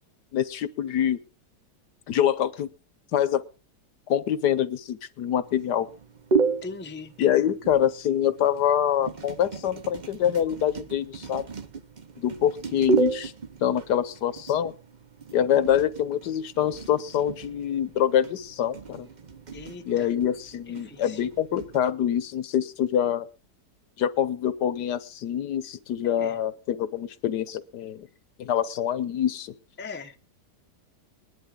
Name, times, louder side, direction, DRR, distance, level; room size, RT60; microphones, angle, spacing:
voice 1, 0.3-1.2 2.1-2.7 3.1-3.4 4.1-5.9 7.2-11.5 12.2-13.3 13.6-14.7 15.3-19.1 19.8-23.3 24.0-28.1 28.4-29.5, left 10 dB, 75° left, 1.4 m, -25 dB
sound 1, 5.4-21.9, right 4 dB, 35° right, 0.8 m, -33 dB
voice 2, 6.6-7.1 19.5-20.1 20.8-21.2 26.0-26.4 29.8-30.2, left 4 dB, 10° left, 0.7 m, -40 dB
21.0 x 11.0 x 3.6 m
omnidirectional pair, 1.8 m